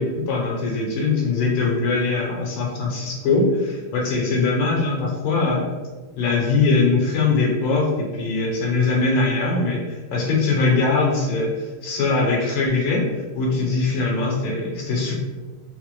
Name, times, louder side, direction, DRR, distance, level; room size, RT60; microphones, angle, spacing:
voice 1, 0.0-5.7 6.2-13.0 13.3-15.2, left 3 dB, 80° left, -2 dB, 1.5 m, -21 dB
4.1 x 2.1 x 3.0 m, 1.3 s
omnidirectional pair, 2.4 m